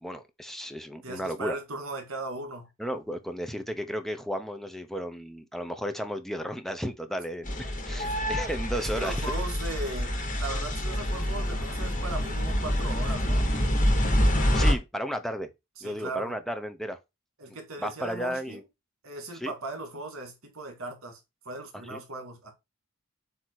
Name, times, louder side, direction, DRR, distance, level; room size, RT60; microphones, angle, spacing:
voice 1, 0.0-1.6 2.8-9.3 14.1-14.2 14.5-15.5 15.8-17.0 17.8-18.6 19.3-19.5 21.9-22.0, equal, ahead, 0.7 m, -34 dB
voice 2, 1.0-2.7 7.9-8.2 8.7-13.5 15.8-16.3 17.4-18.6 19.0-21.2 21.5-22.5, right 2 dB, 70° right, 2.1 m, -38 dB
sound 1, 7.4-14.7, equal, 40° left, 1.6 m, -26 dB
7.8 x 2.9 x 4.7 m
head